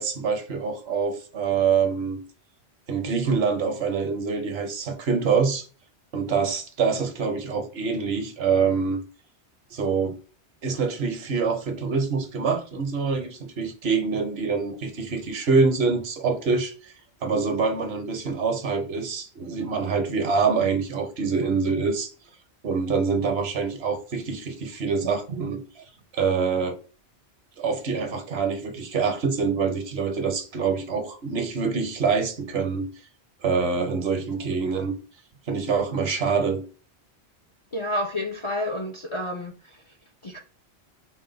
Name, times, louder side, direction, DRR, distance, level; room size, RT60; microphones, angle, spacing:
voice 1, 0.0-2.2 2.9-5.7 6.1-9.0 9.7-10.1 10.6-16.9 17.2-22.1 22.6-25.8 26.1-26.7 27.6-32.9 33.4-34.9 35.5-36.6, right 5 dB, 70° right, 1.0 m, -25 dB
voice 2, 37.7-39.5 40.2-40.4, left 1 dB, 40° left, 0.4 m, -29 dB
4.4 x 2.1 x 3.8 m
omnidirectional pair, 1.1 m